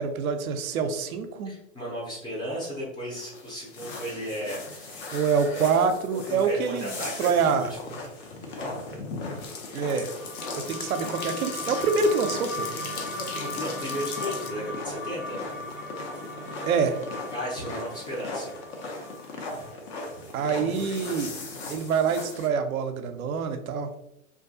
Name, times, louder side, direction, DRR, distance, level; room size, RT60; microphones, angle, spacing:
voice 1, 0.0-1.5 5.1-7.7 9.7-10.1 10.6-12.7 16.7-17.0 20.3-21.3 21.7-23.9, right 5 dB, 80° right, 7 dB, 0.5 m, -26 dB
voice 2, 1.4-5.0 5.5-5.9 6.1-7.9 8.6-8.8 9.7-9.8 10.6-10.7 13.1-15.4 17.3-18.5, equal, 10° left, -5 dB, 0.5 m, -35 dB
sound 1, 3.1-22.5, left 2 dB, 45° left, 0.7 m, -39 dB
sound 2, 9.4-14.5, left 5 dB, 80° left, 0.6 m, -39 dB
sound 3, 9.8-20.1, left 2 dB, 65° left, 1.3 m, -38 dB
2.4 x 2.2 x 2.6 m, 0.81 s
hypercardioid pair, 115°, 42 cm